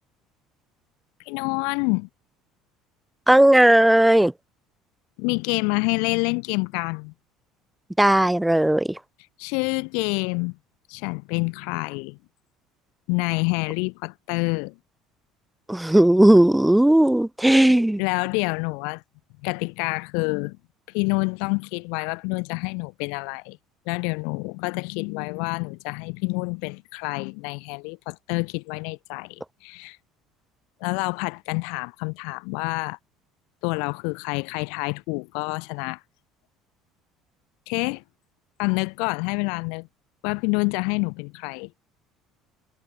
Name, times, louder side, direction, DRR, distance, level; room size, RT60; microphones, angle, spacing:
voice 1, 1.3-2.1 5.2-7.1 9.4-10.6 10.9-12.2 13.1-14.7 18.0-19.0 19.4-20.6 20.9-23.6 23.9-30.0 30.8-33.0 33.6-36.0 37.7-38.0 38.6-39.9 40.2-41.7, left 35 dB, 80° left, 0.5 m, -27 dB
voice 2, 3.3-4.3 8.0-9.0 15.7-18.0, right 1 dB, 5° right, 0.4 m, -16 dB
cardioid pair, 120°, 0 cm